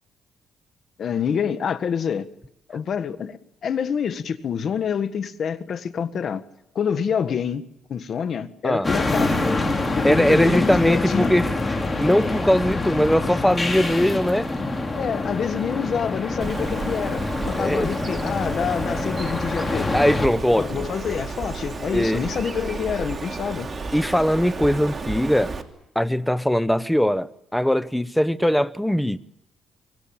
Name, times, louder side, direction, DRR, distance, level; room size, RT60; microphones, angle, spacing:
voice 1, 1.0-2.3 2.7-6.4 6.8-7.6 7.9-9.5 10.0-11.3 14.9-19.9 20.5-23.7, left 7 dB, 55° left, 1.6 m, -27 dB
sound 1, 8.8-20.3, left 2 dB, 20° left, 5.2 m, -26 dB
voice 2, 10.0-11.5 12.0-14.5 17.6-17.9 19.9-20.9 21.9-22.3 23.9-25.5 25.9-29.2, equal, 5° left, 1.1 m, -20 dB
Bird, 16.4-25.6, right 3 dB, 30° right, 2.8 m, -32 dB
24.5 x 24.0 x 8.9 m
cardioid pair, 90°, 0 cm